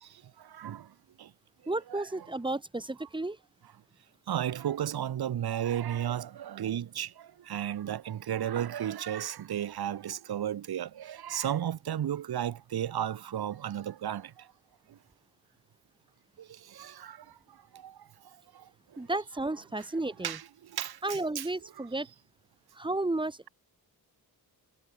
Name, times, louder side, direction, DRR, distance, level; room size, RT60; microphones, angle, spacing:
voice 1, 0.4-0.9 1.2-1.3 1.9-2.3 4.3-14.3 16.4-17.2 17.7-18.0 18.5-18.6 20.2-20.5 20.7-21.5, right 10 dB, 75° right, 1.5 m, -34 dB
voice 2, 1.7-3.4 19.0-20.4 21.0-22.1 22.8-23.5, right 2 dB, 10° right, 1.7 m, -33 dB
wide cardioid pair, 130°, 38 cm